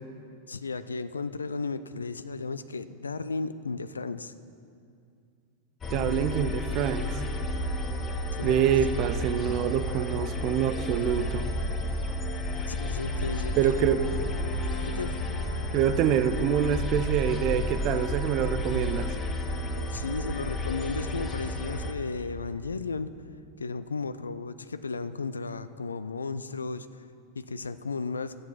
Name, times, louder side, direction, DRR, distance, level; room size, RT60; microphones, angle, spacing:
voice 1, 0.5-4.3 5.9-6.0 8.3-8.6 12.7-13.7 14.8-15.1 19.7-23.1 23.6-27.1 27.3-28.4, left 4 dB, 75° left, 14 dB, 0.4 m, -34 dB
sound 1, 5.8-21.9, left 1 dB, 20° left, 1.1 m, -31 dB
voice 2, 5.9-7.2 8.4-11.5 13.6-14.1 15.7-19.1, right 9 dB, 40° right, 11 dB, 0.6 m, -26 dB
12.5 x 7.7 x 5.8 m, 2.4 s
figure-of-eight pair, 90°, 0 cm